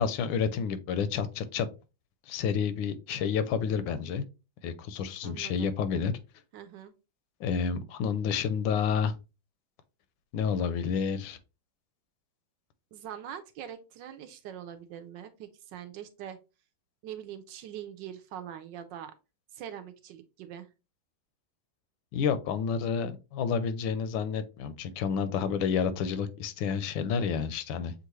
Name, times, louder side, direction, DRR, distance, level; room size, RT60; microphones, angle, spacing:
voice 1, 0.0-1.7 2.3-4.2 4.6-6.1 7.4-9.1 10.3-11.4 22.1-27.9, left 6 dB, 85° left, 12 dB, 1.4 m, -29 dB
voice 2, 5.2-5.7 6.5-6.9 12.9-16.4 17.0-19.1 19.5-20.7, right 9 dB, 75° right, 8 dB, 1.2 m, -43 dB
6.5 x 2.5 x 3.1 m, 0.29 s
omnidirectional pair, 2.2 m